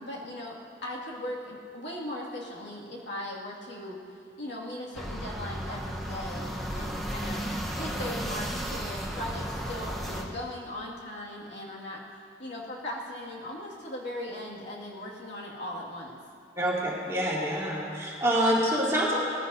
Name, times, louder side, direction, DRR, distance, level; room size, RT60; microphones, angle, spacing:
voice 1, 0.0-4.0 4.4-7.5 7.8-12.0 12.4-16.2, left 1 dB, 65° left, -5 dB, 2.2 m, -38 dB
sound 1, 4.9-10.2, equal, ahead, 1.0 m, -34 dB
voice 2, 16.6-19.2, equal, 15° right, -6 dB, 2.4 m, -26 dB
18.5 x 15.0 x 2.7 m, 2.3 s
head